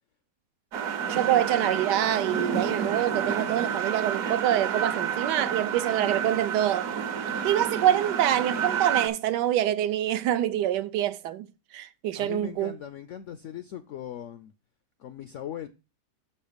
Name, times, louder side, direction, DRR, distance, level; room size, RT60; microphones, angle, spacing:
sound 1, 0.7-9.1, right 7 dB, 60° right, 1.2 m, -30 dB
voice 1, 1.1-6.9 7.4-11.5 11.7-12.7, right 12 dB, 80° right, 1.2 m, -26 dB
voice 2, 12.2-14.5 15.0-15.7, left 10 dB, 75° left, 0.6 m, -39 dB
6.3 x 5.6 x 5.0 m
omnidirectional pair, 1.8 m